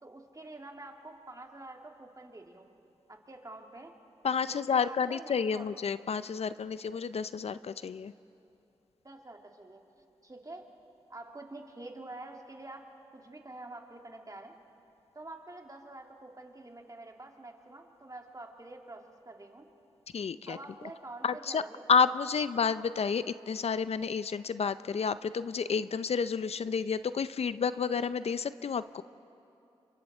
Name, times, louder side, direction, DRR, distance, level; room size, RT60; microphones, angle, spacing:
voice 1, 0.0-2.7 3.1-3.9 4.5-5.7 9.0-10.7 11.1-12.9 13.1-14.6 15.1-19.7 20.5-21.8, right 2 dB, 30° right, 2 dB, 2.7 m, -47 dB
voice 2, 4.2-8.1 20.1-20.6 21.2-21.6 21.9-29.0, left 6 dB, 65° left, 14 dB, 0.5 m, -30 dB
29.5 x 25.0 x 4.4 m, 2.8 s
cardioid pair, 45°, 11 cm